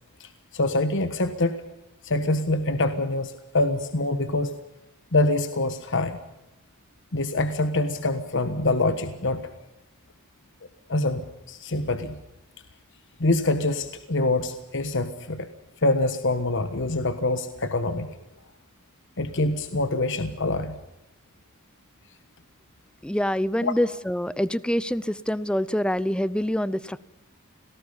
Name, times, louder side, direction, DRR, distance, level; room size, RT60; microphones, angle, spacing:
voice 1, 0.2-1.6 2.0-4.5 5.1-6.2 7.1-9.5 10.9-12.2 13.2-15.5 15.8-18.1 19.2-20.8 23.6-23.7, left 2 dB, 60° left, 9 dB, 1.4 m, -25 dB
voice 2, 23.0-27.0, equal, 5° left, 18 dB, 0.6 m, -26 dB
26.5 x 18.5 x 5.6 m, 0.89 s
head